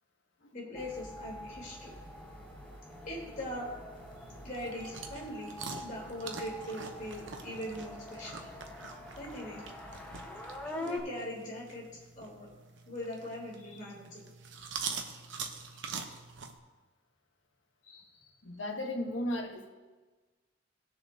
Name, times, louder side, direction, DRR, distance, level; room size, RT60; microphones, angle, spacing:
voice 1, 0.5-1.9 3.1-3.7 4.4-5.5 5.8-8.4 9.2-9.6 10.6-12.5 12.9-14.2 15.7-15.8 17.8-18.1, equal, 45° left, -5 dB, 3.6 m, -41 dB
sound 1, 0.7-11.0, left 1 dB, 10° left, 1.2 m, -45 dB
sound 2, 3.9-16.6, right 5 dB, 75° right, 0.9 m, -45 dB
voice 2, 18.4-19.7, left 1 dB, 85° left, 3 dB, 1.3 m, -35 dB
18.5 x 6.8 x 2.8 m, 1.3 s
head